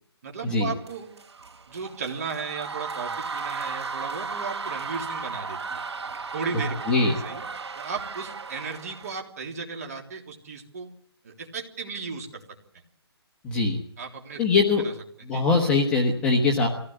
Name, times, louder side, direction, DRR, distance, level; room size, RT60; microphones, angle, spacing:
voice 1, 0.2-1.1 1.7-5.8 6.3-7.4 7.8-10.9 11.2-12.4 14.0-14.4 14.8-14.9 15.3-15.4, right 5 dB, 35° right, 2 dB, 3.4 m, -35 dB
sound 1, 0.8-9.1, right 5 dB, 80° right, 3.4 m, -35 dB
voice 2, 13.4-13.8 14.4-14.8 15.2-16.7, left 4 dB, 5° left, -1 dB, 1.2 m, -22 dB
23.0 x 16.5 x 8.0 m, 0.63 s
hypercardioid pair, 175°, 14 cm